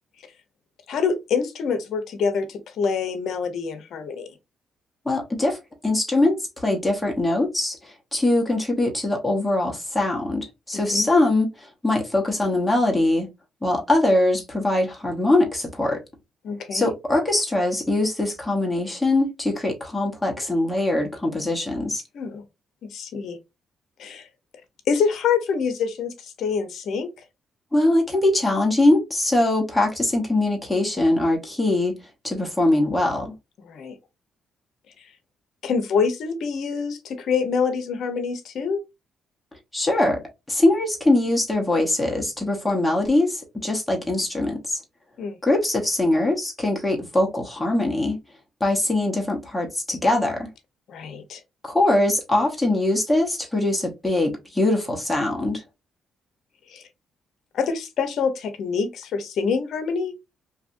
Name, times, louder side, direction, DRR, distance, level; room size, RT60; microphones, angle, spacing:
voice 1, 0.9-4.3 10.9-11.1 16.4-16.9 22.1-22.4 22.9-23.4 24.0-24.3 24.9-27.1 33.6-33.9 35.6-38.8 45.2-45.4 50.9-51.4 56.7-56.8 57.5-60.1, left 5 dB, 70° left, 0.6 m, -26 dB
voice 2, 5.0-5.6 5.8-13.3 13.6-16.0 16.7-22.0 27.7-32.0 32.2-33.3 39.7-40.2 40.5-44.8 45.4-48.2 48.6-50.5 51.6-55.6, left 2 dB, 5° left, 0.9 m, -22 dB
2.7 x 2.4 x 2.5 m
cardioid pair, 90°, 0 cm